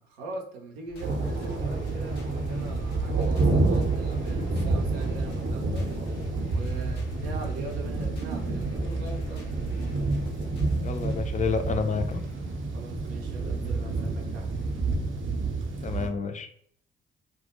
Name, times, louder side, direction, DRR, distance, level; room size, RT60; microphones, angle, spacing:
voice 1, 0.1-5.8 6.5-9.5 12.7-14.5, right 2 dB, 85° right, 2 dB, 0.5 m, -41 dB
sound 1, 0.9-15.0 15.6-15.7 15.8-15.9, left 4 dB, 90° left, 0.4 m, -45 dB
sound 2, 1.0-16.1, right 3 dB, 40° right, 0.6 m, -28 dB
voice 2, 10.8-12.2 15.8-16.5, left 5 dB, 25° left, 8 dB, 0.3 m, -29 dB
2.2 x 2.1 x 2.9 m, 0.64 s
hypercardioid pair, 40°, 29 cm